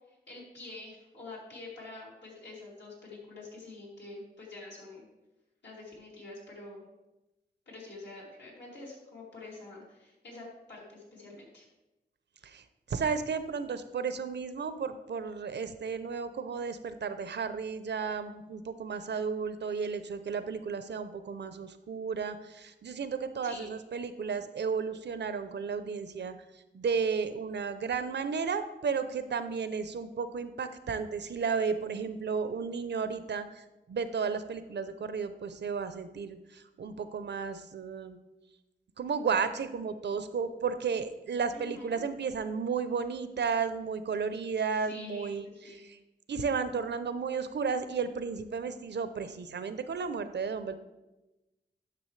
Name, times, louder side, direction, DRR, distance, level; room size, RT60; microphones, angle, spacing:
voice 1, 0.1-5.1 5.6-6.9 7.7-11.6 23.4-23.7 41.5-42.0 44.7-45.9, left 2 dB, 75° left, -5 dB, 2.9 m, -47 dB
voice 2, 12.4-38.2 39.0-45.5 45.8-46.0 46.3-50.7, right 5 dB, 75° right, 11 dB, 0.6 m, -33 dB
10.5 x 6.1 x 3.2 m, 1.0 s
wide cardioid pair, 80°, 18 cm